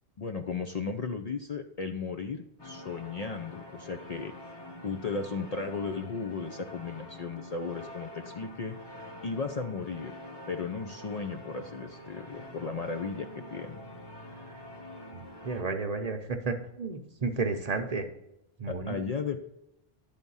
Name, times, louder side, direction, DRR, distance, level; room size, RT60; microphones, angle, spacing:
voice 1, 0.2-4.3 4.8-8.8 9.2-10.1 10.5-13.8 18.7-19.4, left 4 dB, 50° left, 5 dB, 0.5 m, -35 dB
sound 1, 2.6-15.6, left 1 dB, 25° left, 1.1 m, -46 dB
voice 2, 15.1-18.0 18.6-19.0, right 4 dB, 45° right, 5 dB, 0.7 m, -32 dB
10.5 x 3.6 x 5.4 m, 0.85 s
omnidirectional pair, 1.1 m